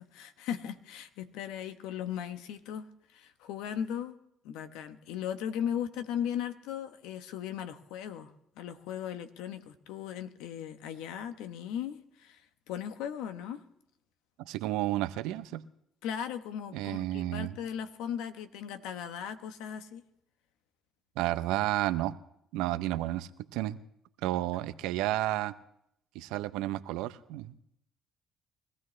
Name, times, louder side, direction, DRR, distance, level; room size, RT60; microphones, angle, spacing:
voice 1, 0.0-2.9 3.1-4.2 4.4-13.6 16.0-20.0, left 9 dB, 85° left, 10 dB, 1.1 m, -37 dB
voice 2, 14.4-15.6 16.7-17.6 21.2-22.2 22.5-23.8 24.2-25.5 26.1-27.6, right 15 dB, 85° right, 14 dB, 0.6 m, -31 dB
23.0 x 15.0 x 3.2 m, 0.75 s
supercardioid pair, 65°, 0 cm